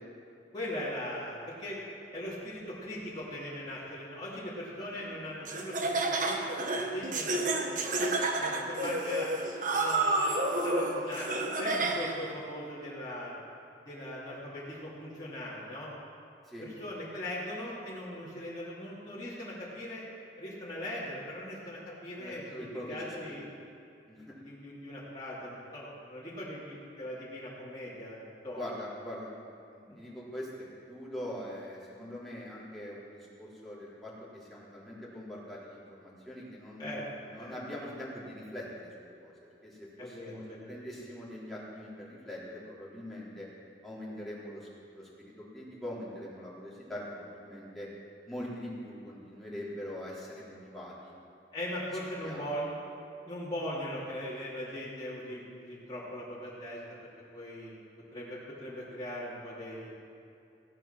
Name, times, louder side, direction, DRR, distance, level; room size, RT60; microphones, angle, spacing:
voice 1, 0.5-1.8 2.1-9.3 9.7-11.3 11.6-13.3 13.8-15.9 16.6-20.0 20.4-23.4 24.4-28.6 36.8-37.1 37.4-37.6 40.0-40.7 51.5-52.7 53.2-57.8 58.1-59.9, left 1 dB, 25° left, -9 dB, 3.1 m, -40 dB
Laughter, 5.5-12.3, right 2 dB, 50° right, 1.2 m, -30 dB
voice 2, 22.2-23.3 24.1-24.4 28.5-29.3 29.7-36.9 37.2-43.5 43.8-47.9 48.3-51.1 52.2-52.4, equal, ahead, -8 dB, 3.8 m, -43 dB
17.0 x 11.5 x 6.0 m, 2.7 s
head